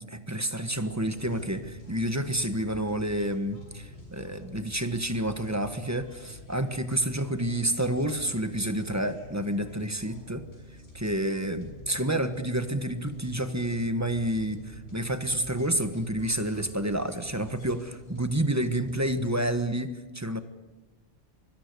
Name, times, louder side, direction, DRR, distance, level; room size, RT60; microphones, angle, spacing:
voice 1, 0.0-10.5 10.9-20.4, right 1 dB, 15° right, 9 dB, 1.4 m, -29 dB
sound 1, 0.7-19.4, left 2 dB, 80° left, 6.8 m, -48 dB
25.5 x 21.0 x 6.9 m, 1.2 s
omnidirectional pair, 1.1 m